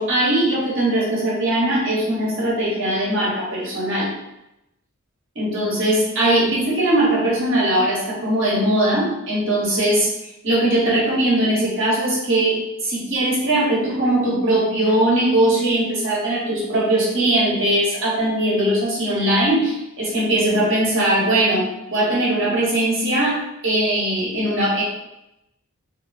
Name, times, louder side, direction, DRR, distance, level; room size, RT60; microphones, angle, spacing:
voice 1, 0.0-4.1 5.3-10.1 10.4-24.8, right 1 dB, 60° right, -5 dB, 1.3 m, -20 dB
3.8 x 2.8 x 2.6 m, 0.88 s
head